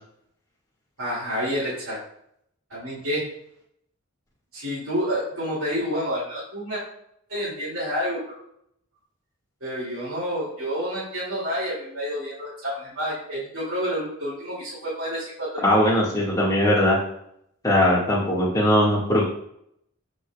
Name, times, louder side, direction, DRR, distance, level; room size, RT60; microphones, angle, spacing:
voice 1, 1.0-2.0 2.7-3.2 4.5-6.8 7.3-8.4 9.6-15.8, equal, 65° right, -9 dB, 2.5 m, -29 dB
voice 2, 15.6-17.0 17.6-19.2, left 1 dB, 15° left, -4 dB, 1.8 m, -20 dB
14.0 x 5.1 x 2.3 m, 0.73 s
head